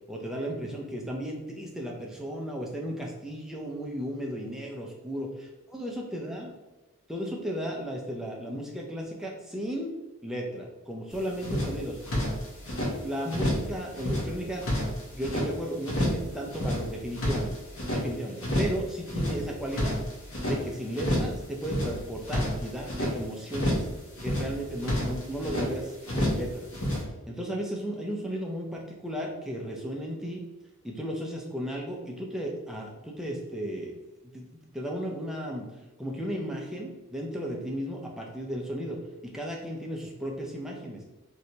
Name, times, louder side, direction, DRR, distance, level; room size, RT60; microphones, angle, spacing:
voice 1, 0.1-6.5 7.1-9.9 10.2-12.0 13.0-14.7 15.1-17.5 17.9-20.0 20.4-23.9 24.2-26.7 27.3-30.4 30.8-34.0 34.3-35.7 36.0-41.0, equal, ahead, -1 dB, 0.4 m, -35 dB
sound 1, 11.1-11.2 11.4-12.9 13.3-13.7 13.9-15.5 15.8-16.2 16.5-18.0 18.4-18.8 19.0-20.6 20.9-21.3 21.6-23.1 23.5-23.9 24.2-25.7 26.0-26.5 26.7-27.0, equal, 65° left, 0.9 m, -29 dB
3.2 x 2.7 x 2.8 m, 1.1 s
head